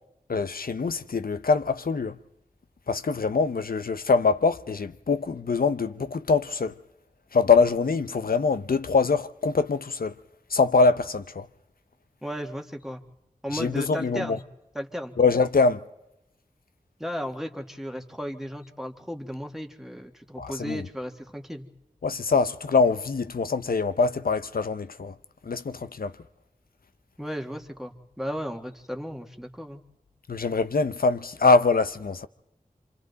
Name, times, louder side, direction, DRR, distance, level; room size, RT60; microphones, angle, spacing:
voice 1, 0.3-2.1 2.9-6.7 7.3-10.1 10.5-11.5 13.5-14.4 15.2-15.8 20.4-20.8 22.0-25.1 25.4-26.1 30.3-32.3, left 4 dB, 85° left, 0.8 m, -23 dB
voice 2, 12.2-13.0 13.4-14.4 14.7-15.2 17.0-21.7 27.2-29.8, equal, ahead, 1.7 m, -35 dB
27.0 x 25.5 x 4.1 m
wide cardioid pair, 45°, 15 cm